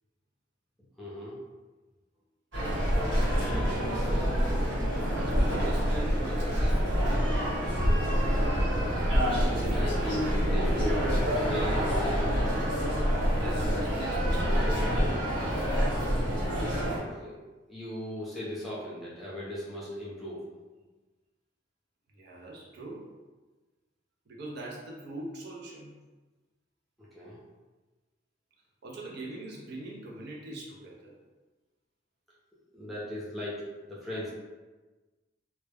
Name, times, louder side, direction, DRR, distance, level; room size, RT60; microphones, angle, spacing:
voice 1, 1.0-1.4 3.0-4.4 9.1-9.4 9.7-11.1 11.4-12.3 17.1-17.4 17.7-20.4 27.0-27.4 32.7-34.3, left 1 dB, ahead, -8 dB, 0.6 m, -38 dB
sound 1, 2.5-17.0, equal, 80° right, 1.2 m, -27 dB
voice 2, 4.8-7.2 13.3-14.8 22.1-23.1 24.3-25.9 28.8-31.1, right 2 dB, 60° right, -3 dB, 0.5 m, -42 dB
2.2 x 2.1 x 3.2 m, 1.2 s
head